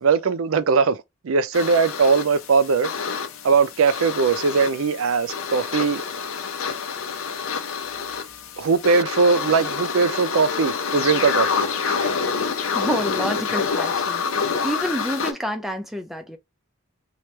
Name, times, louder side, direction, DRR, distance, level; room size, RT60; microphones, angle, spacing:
voice 1, 0.0-2.9 3.4-6.0 8.6-12.1, right 5 dB, 80° right, 0.4 m, -20 dB
sound 1, 1.5-15.3, left 5 dB, 80° left, 0.7 m, -27 dB
voice 2, 12.7-16.4, equal, ahead, 0.5 m, -28 dB
3.1 x 3.0 x 3.2 m
head